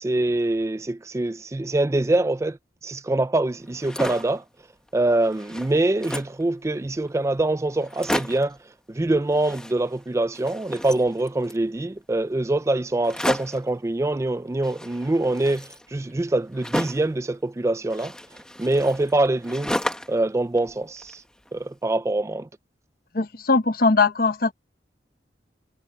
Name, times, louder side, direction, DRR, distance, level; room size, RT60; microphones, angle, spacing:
voice 1, 0.0-2.6 2.8-4.4 4.9-8.6 8.9-18.1 18.6-19.7 20.1-21.2 21.5-22.5, right 2 dB, 15° right, 0.3 m, -24 dB
sound 1, 3.7-4.4 4.9-5.0 5.2-6.4 7.1-7.2 7.4-7.5 7.8-8.6 9.3-10.1 10.3-11.6 13.0-13.7 14.6-17.2 17.9-20.2 20.6-21.5, equal, 5° left, 1.2 m, -33 dB
voice 2, 23.1-24.5, left 3 dB, 50° left, 0.9 m, -20 dB
head